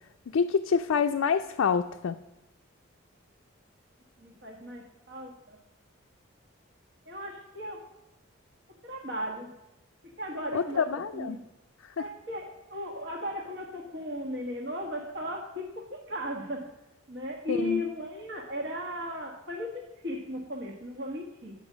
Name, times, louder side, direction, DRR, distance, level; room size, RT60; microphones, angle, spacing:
voice 1, 0.3-2.2 10.5-11.4 12.0-12.1 17.5-17.8, left 6 dB, 80° left, 5 dB, 0.4 m, -27 dB
voice 2, 4.2-5.6 7.0-7.8 8.8-9.5 10.0-11.4 12.0-16.7 17.1-21.5, equal, 60° right, 1 dB, 1.5 m, -36 dB
9.7 x 5.3 x 6.2 m, 0.93 s
head